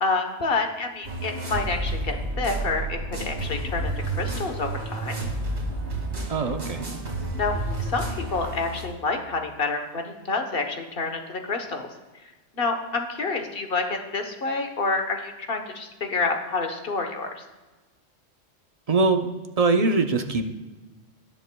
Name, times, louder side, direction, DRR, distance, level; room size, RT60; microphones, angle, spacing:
voice 1, 0.0-3.9 4.2-5.2 7.4-7.5 7.9-11.9 12.6-17.4, left 3 dB, 50° left, 5 dB, 1.2 m, -28 dB
sound 1, 1.0-8.8, right 2 dB, 55° right, 2.5 m, -30 dB
voice 2, 6.3-6.8 18.9-19.3 19.6-20.5, right 3 dB, 40° right, 6 dB, 0.6 m, -22 dB
19.0 x 7.8 x 2.2 m, 1.2 s
omnidirectional pair, 1.3 m